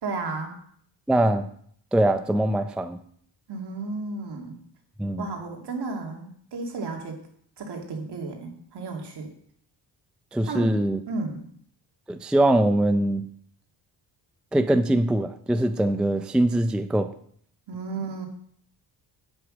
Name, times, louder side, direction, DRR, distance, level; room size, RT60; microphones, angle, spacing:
voice 1, 0.0-0.6 3.5-4.6 5.2-7.2 7.6-9.3 10.5-10.8 11.1-11.4 17.7-18.3, right 3 dB, 65° right, 2.5 m, -33 dB
voice 2, 1.1-1.5 1.9-3.0 5.0-5.3 10.3-11.0 12.1-13.3 14.5-17.1, right 1 dB, ahead, 0.4 m, -22 dB
8.2 x 8.0 x 6.3 m
cardioid pair, 120°, 44 cm